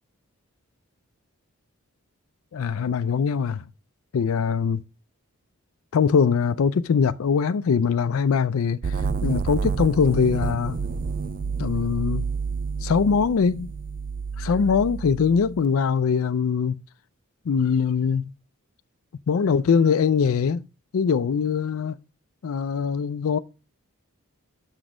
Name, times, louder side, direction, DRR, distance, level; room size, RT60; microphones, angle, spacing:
voice 1, 2.5-3.6 4.1-4.8 5.9-10.8 11.6-12.3 12.8-13.7 14.4-16.8 17.5-18.3 19.3-20.6 20.9-21.9 22.4-23.4, left 6 dB, 70° left, 0.4 m, -22 dB
sound 1, 8.8-15.6, right 5 dB, 40° right, 0.3 m, -29 dB
6.3 x 6.0 x 4.8 m
head